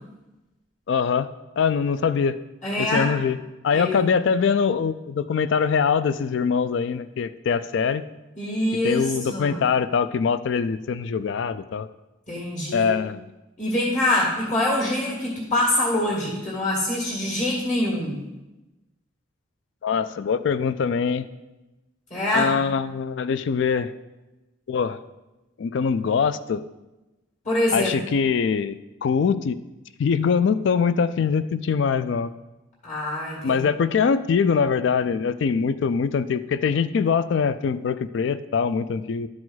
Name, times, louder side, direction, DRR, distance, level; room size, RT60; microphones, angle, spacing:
voice 1, 0.9-1.3 1.6-2.3 2.8-3.4 3.6-8.0 8.7-11.9 12.7-13.2 19.8-21.3 22.3-23.9 24.7-25.0 25.6-26.6 27.7-29.6 30.0-32.3 33.4-39.3, left 6 dB, 60° left, 14 dB, 0.3 m, -23 dB
voice 2, 2.6-3.1 3.7-4.0 8.4-9.6 12.3-12.9 13.6-18.2 22.1-22.5 27.5-28.0 32.8-33.7, left 1 dB, 35° left, -4 dB, 1.9 m, -24 dB
11.5 x 4.9 x 4.0 m, 1.0 s
head